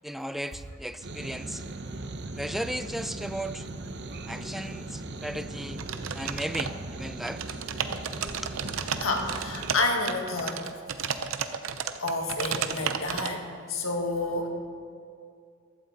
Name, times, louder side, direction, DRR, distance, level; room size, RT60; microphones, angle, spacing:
voice 1, 0.0-1.6 2.4-3.7 4.3-5.8 6.1-7.6 8.2-8.6, equal, ahead, 11 dB, 0.4 m, -36 dB
sound 1, 1.0-9.8, right 2 dB, 60° right, 0.9 m, -38 dB
sound 2, 5.8-7.0 7.2-13.3, right 7 dB, 85° right, 0.7 m, -33 dB
voice 2, 9.0-10.6 12.0-13.4 13.7-14.5, left 2 dB, 80° left, 3 dB, 1.8 m, -29 dB
15.0 x 12.5 x 4.1 m, 2.3 s
head